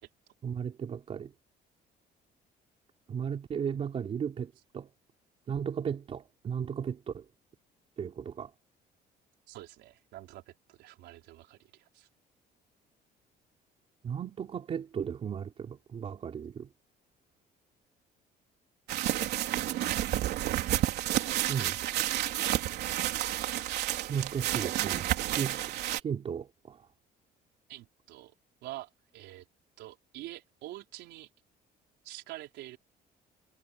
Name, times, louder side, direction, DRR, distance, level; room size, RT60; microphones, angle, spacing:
voice 1, 0.4-1.3 3.1-4.9 5.5-7.2 8.0-8.5 14.0-16.7 21.5-21.8 24.1-26.8, right 7 dB, 35° right, 3.7 m, -35 dB
voice 2, 9.5-12.1 27.7-28.3 28.6-29.4 29.8-31.3 32.0-32.8, right 16 dB, 90° right, 4.5 m, -46 dB
sound 1, 18.9-26.0, right 14 dB, 75° right, 3.8 m, -30 dB
cardioid pair, 160°, 17 cm